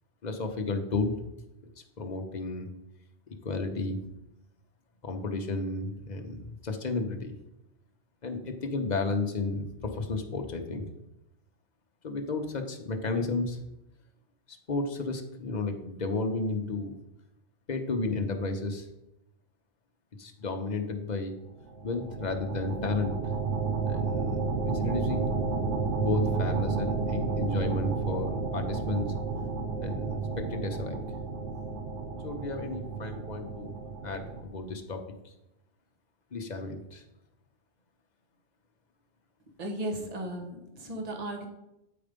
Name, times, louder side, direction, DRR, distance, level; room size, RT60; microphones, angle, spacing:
voice 1, 0.2-1.1 2.0-2.7 3.3-4.0 5.0-7.3 8.2-10.9 12.0-13.6 14.7-17.0 17.7-18.9 20.2-21.3 21.8-23.1 23.9-25.3 26.0-29.1 29.8-31.0 32.2-33.7 34.0-35.0 36.3-37.0, left 3 dB, 40° left, 5 dB, 1.0 m, -32 dB
sound 1, 21.6-34.4, right 4 dB, 80° right, 1.2 m, -31 dB
voice 2, 39.6-41.5, right 1 dB, 35° right, 3 dB, 1.3 m, -35 dB
8.9 x 4.9 x 5.2 m, 0.89 s
omnidirectional pair, 1.2 m